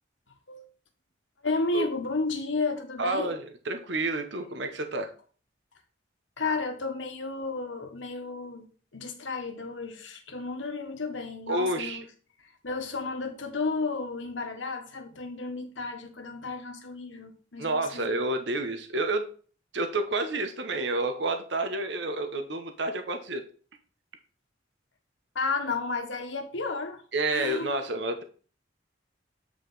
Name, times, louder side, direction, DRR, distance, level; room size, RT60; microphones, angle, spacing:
voice 1, 1.4-3.3 6.4-8.7 8.9-12.1 12.4-18.1 25.3-27.0 27.3-27.7, left 3 dB, 80° left, 1.4 m, -32 dB
voice 2, 3.0-5.1 11.5-12.0 17.6-19.3 19.7-23.4 27.1-28.2, right 2 dB, 65° right, 1.0 m, -29 dB
8.2 x 4.8 x 4.1 m
head